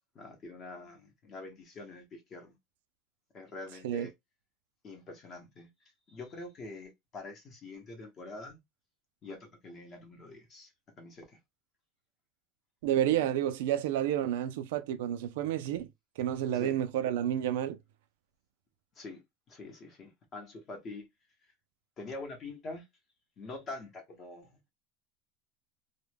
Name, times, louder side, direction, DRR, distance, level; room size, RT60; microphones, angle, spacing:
voice 1, 0.1-2.6 3.3-4.1 4.8-5.7 6.1-8.6 9.2-10.7 11.0-11.4 16.5-16.8 19.0-19.2 19.5-21.1 22.0-22.8 23.4-24.6, left 2 dB, 25° left, 0.8 m, -45 dB
voice 2, 12.8-15.9 16.2-17.8, right 11 dB, 75° right, 0.3 m, -30 dB
2.2 x 2.1 x 3.2 m
supercardioid pair, 175°, 0 cm